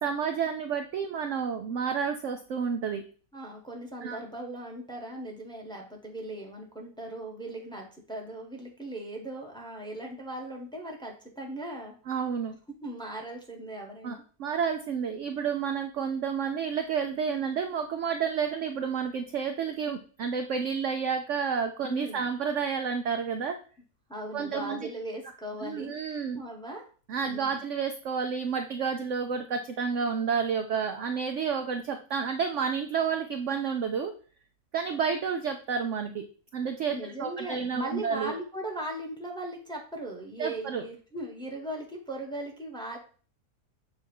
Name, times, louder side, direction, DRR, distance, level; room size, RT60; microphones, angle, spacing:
voice 1, 0.0-3.0 4.0-4.2 12.1-12.6 14.0-23.6 24.3-24.8 25.6-26.4 27.1-34.1 34.7-36.2 36.5-38.3 40.4-40.8, right 6 dB, 65° right, 5 dB, 0.8 m, -30 dB
voice 2, 3.3-11.9 12.8-14.2 21.8-22.2 24.1-25.9 26.3-26.8 27.2-27.6 36.9-43.0, right 1 dB, 5° left, 1 dB, 1.1 m, -38 dB
7.0 x 2.7 x 5.3 m, 0.40 s
omnidirectional pair, 1.7 m